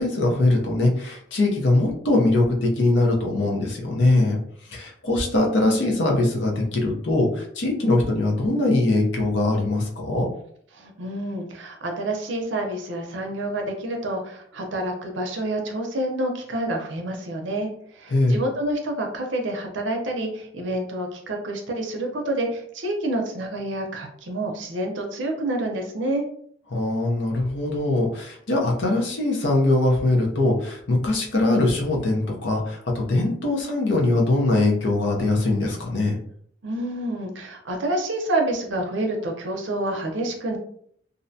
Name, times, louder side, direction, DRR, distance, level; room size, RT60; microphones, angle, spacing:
voice 1, 0.0-4.4 4.7-10.3 18.1-18.4 26.7-36.2, left 2 dB, 75° left, 0 dB, 0.7 m, -22 dB
voice 2, 10.7-26.3 36.6-40.6, right 1 dB, 75° right, 2 dB, 0.6 m, -28 dB
2.5 x 2.1 x 2.6 m, 0.63 s
head